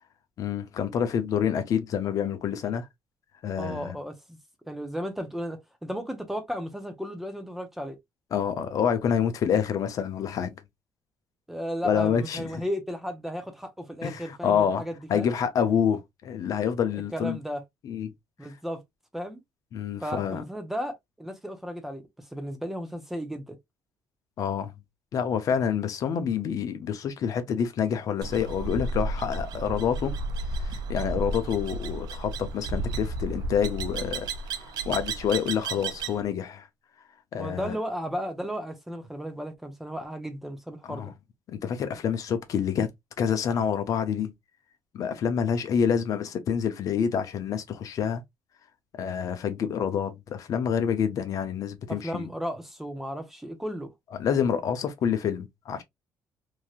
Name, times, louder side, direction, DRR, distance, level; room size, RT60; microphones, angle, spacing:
voice 1, 0.4-2.9 3.4-4.0 8.3-10.6 11.8-12.6 14.0-17.4 17.8-18.1 19.7-20.4 24.4-24.7 25.1-30.1 30.6-36.7 37.3-37.8 40.9-41.1 41.5-42.9 43.2-44.3 44.9-48.2 48.9-52.3 54.1-55.8, left 7 dB, 50° left, 0.6 m, -27 dB
voice 2, 3.6-4.4 4.7-8.0 11.5-15.3 17.1-17.6 18.4-18.8 19.1-19.4 20.0-20.9 21.2-23.6 37.3-41.1 51.9-53.9, equal, 5° right, 0.7 m, -34 dB
sound 1, 28.2-36.2, right 2 dB, 70° right, 0.5 m, -32 dB
3.1 x 2.8 x 2.4 m
cardioid pair, 135°, 7 cm